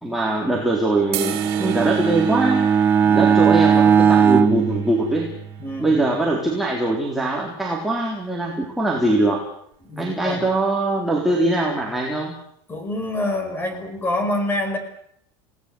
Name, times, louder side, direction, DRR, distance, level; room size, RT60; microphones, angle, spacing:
voice 1, 0.0-2.7 3.1-5.3 5.8-9.4 10.0-12.3, right 2 dB, ahead, -3 dB, 3.8 m, -22 dB
Bowed string instrument, 1.0-5.7, right 7 dB, 15° right, 1.1 m, -18 dB
sound 1, 1.1-7.4, right 11 dB, 50° right, 8.0 m, -36 dB
voice 2, 3.0-3.4 5.6-6.1 9.8-10.5 12.7-14.8, left 1 dB, 15° left, 8 dB, 5.7 m, -26 dB
28.5 x 18.5 x 8.0 m, 0.69 s
supercardioid pair, 155°, 12 cm